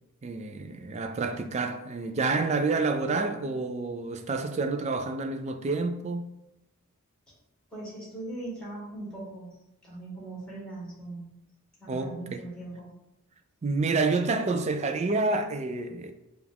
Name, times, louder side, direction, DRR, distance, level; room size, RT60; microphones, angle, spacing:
voice 1, 0.2-6.3 11.9-12.4 13.6-16.1, right 3 dB, 30° right, 0.3 m, -28 dB
voice 2, 7.7-9.6 9.8-11.3 11.8-12.9, right 2 dB, 5° left, 1.5 m, -40 dB
4.9 x 2.4 x 3.5 m
head